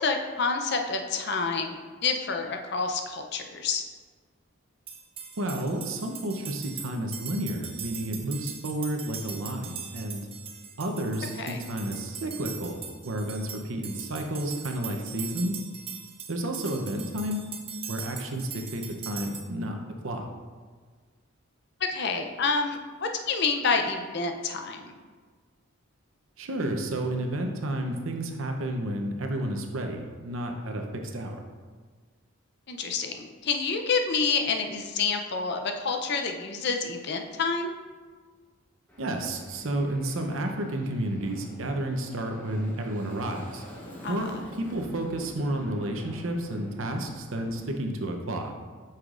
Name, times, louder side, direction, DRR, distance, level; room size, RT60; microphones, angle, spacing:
voice 1, 0.0-3.8 11.4-11.6 21.9-24.9 32.7-37.7 44.0-44.2, left 4 dB, 50° left, 4 dB, 0.5 m, -28 dB
sound 1, 4.9-19.4, right 7 dB, 25° right, 0.5 m, -41 dB
voice 2, 5.4-10.3 10.8-12.8 13.0-15.6 16.3-17.4 17.9-19.7 20.0-20.3 26.4-31.4 39.0-43.6 44.1-48.5, right 1 dB, 65° right, 3 dB, 0.7 m, -31 dB
Aircraft, 38.9-47.7, left 1 dB, 10° left, 0.8 m, -47 dB
7.9 x 5.7 x 2.5 m, 1.5 s
head